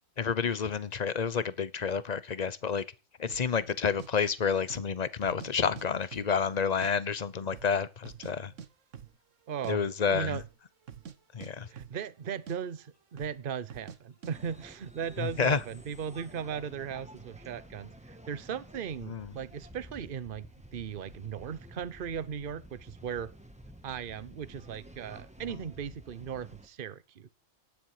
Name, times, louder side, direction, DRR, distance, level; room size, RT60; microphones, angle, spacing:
voice 1, 0.2-2.8 3.2-8.5 9.7-10.4 11.3-11.7 15.2-15.6 19.1-19.3, left 6 dB, 35° left, 0.9 m, -29 dB
sound 1, 3.3-3.5 4.0-4.1 4.6-4.9 5.2-5.9 6.1-6.9 7.2-7.3 7.5-8.3 8.6-8.7 8.9-9.2 9.5-9.8 10.3-10.6 10.9-11.2 11.4-12.2 12.5-12.6 13.2-13.4 13.7-14.0 14.2-14.4, right 7 dB, 65° right, 1.4 m, -46 dB
voice 2, 9.5-10.4 11.7-20.5 20.7-23.3 23.8-27.3, right 8 dB, 45° right, 1.0 m, -37 dB
sound 2, 14.3-26.7, equal, 5° right, 1.6 m, -51 dB
18.0 x 10.5 x 4.9 m
omnidirectional pair, 1.4 m